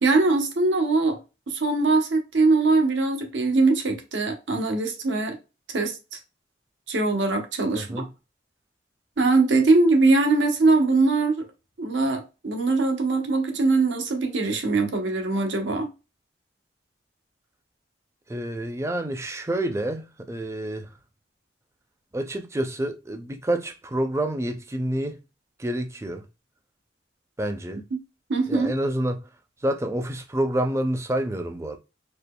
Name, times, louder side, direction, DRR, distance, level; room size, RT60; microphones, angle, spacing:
voice 1, 0.0-1.2 1.5-5.4 5.7-6.2 6.9-8.1 9.2-11.5 11.8-15.9 27.9-28.0 28.3-28.7, right 3 dB, 80° right, 0.9 m, -22 dB
voice 2, 7.8-8.1 18.3-20.9 22.1-25.2 25.6-26.2 27.4-27.8 28.5-29.2 29.6-31.8, right 1 dB, 15° right, 0.4 m, -28 dB
4.2 x 2.8 x 2.3 m
head